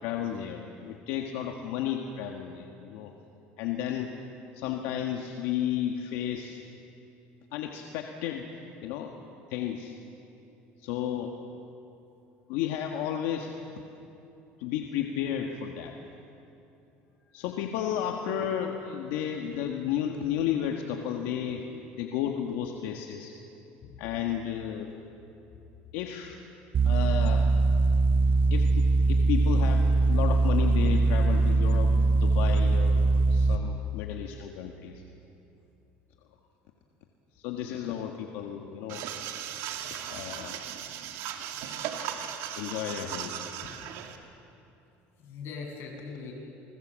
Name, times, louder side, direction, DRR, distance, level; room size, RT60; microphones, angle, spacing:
voice 1, 0.0-3.1 3.6-4.1 4.5-6.6 7.5-8.5 8.8-9.1 9.5-9.9 10.8-11.3 12.5-13.6 14.6-16.0 17.3-21.6 22.0-23.3 24.0-24.9 25.9-26.4 26.8-27.5 28.5-33.0 33.3-35.0 37.3-39.0 40.1-40.7 42.6-43.5, left 9 dB, 85° left, 3 dB, 1.6 m, -33 dB
sound 1, 26.7-33.6, right 3 dB, 40° right, 1.0 m, -22 dB
sound 2, 38.9-44.2, right 9 dB, 75° right, 2.2 m, -37 dB
voice 2, 39.9-40.3 41.3-41.4 41.7-42.1 45.2-46.3, left 5 dB, 55° left, 0 dB, 7.1 m, -43 dB
28.5 x 20.0 x 7.6 m, 2.8 s
cardioid pair, 120°, 5 cm